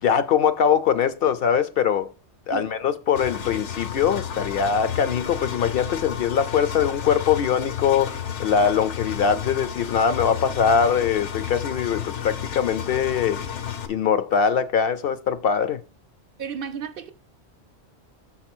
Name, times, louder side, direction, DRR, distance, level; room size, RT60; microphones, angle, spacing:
voice 1, 0.0-2.1 2.5-13.4 13.9-15.8, left 7 dB, 65° left, 0.7 m, -22 dB
Engine, 3.2-13.9, left 8 dB, 85° left, 1.1 m, -32 dB
voice 2, 16.4-17.1, right 7 dB, 60° right, 0.7 m, -33 dB
6.4 x 4.3 x 6.0 m
omnidirectional pair, 1.2 m